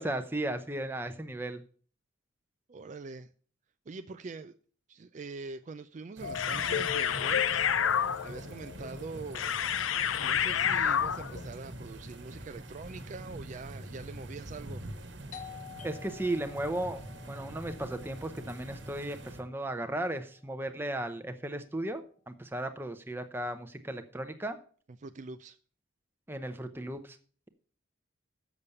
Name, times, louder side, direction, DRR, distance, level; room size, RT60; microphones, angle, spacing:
voice 1, 0.0-1.6 15.8-24.6 26.3-27.2, right 1 dB, 10° right, 0.8 m, -35 dB
voice 2, 2.7-3.3 3.9-4.6 4.9-7.7 8.2-9.5 10.2-14.8 25.0-25.6, right 4 dB, 40° right, 0.4 m, -43 dB
sound 1, 6.2-11.5, left 8 dB, 90° left, 0.5 m, -29 dB
sound 2, 6.2-19.4, right 1 dB, 65° right, 1.3 m, -45 dB
Doorbell, 15.3-20.7, left 9 dB, 40° left, 1.0 m, -51 dB
7.2 x 6.8 x 6.7 m
head